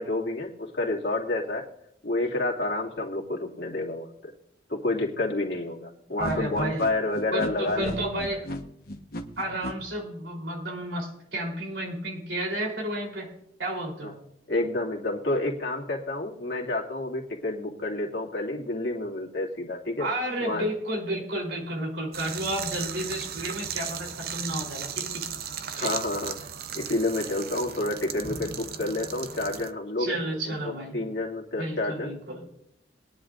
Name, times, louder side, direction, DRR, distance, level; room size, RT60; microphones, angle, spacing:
voice 1, 0.0-1.6 2.0-4.3 4.7-8.0 14.0-14.1 14.5-20.1 20.4-20.6 25.7-26.3 26.7-30.2 30.5-32.2, left 2 dB, 70° left, -1 dB, 2.3 m, -29 dB
sound 1, 6.2-9.7, left 1 dB, 55° left, 1.2 m, -35 dB
voice 2, 6.2-6.8 7.3-8.5 9.4-13.3 13.6-14.1 20.0-25.2 25.8-25.9 30.0-31.1 31.6-32.5, right 1 dB, 85° right, 0 dB, 3.7 m, -32 dB
sound 2, 22.1-29.7, right 8 dB, 55° right, 0.6 m, -36 dB
21.5 x 10.0 x 2.6 m, 0.76 s
head